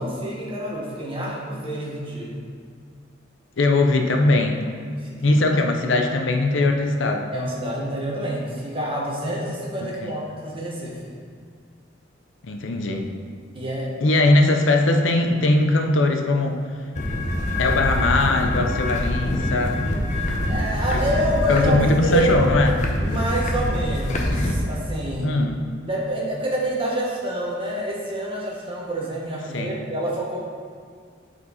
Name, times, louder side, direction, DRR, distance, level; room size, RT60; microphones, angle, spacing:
voice 1, 0.0-2.4 5.0-5.4 7.3-11.2 13.5-13.9 20.5-22.5 23.0-25.3 25.8-30.4, right 1 dB, 30° right, -4 dB, 1.4 m, -27 dB
voice 2, 3.6-4.6 5.2-7.3 9.8-10.1 12.4-13.1 14.0-16.7 17.6-19.8 20.9-21.1 21.5-22.8 25.2-25.7 29.5-29.8, left 2 dB, 80° left, 4 dB, 0.7 m, -20 dB
sound 1, 16.9-24.5, left 1 dB, 40° left, 0.8 m, -24 dB
8.6 x 4.5 x 4.1 m, 2.1 s
head